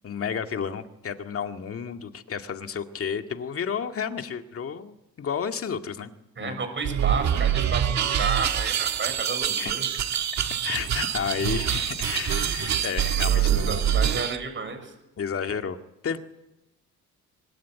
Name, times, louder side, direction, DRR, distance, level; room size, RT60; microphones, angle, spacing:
voice 1, 0.0-6.1 6.4-6.6 9.6-9.7 10.6-13.8 15.2-15.8 16.0-16.2, left 7 dB, 50° left, 7 dB, 2.0 m, -31 dB
voice 2, 6.4-9.8 13.2-14.9, right 4 dB, 40° right, 7 dB, 6.6 m, -32 dB
sound 1, 6.8-14.4, right 9 dB, 65° right, 1.8 m, -25 dB
23.5 x 21.0 x 9.4 m, 0.91 s
cardioid pair, 90°, 30 cm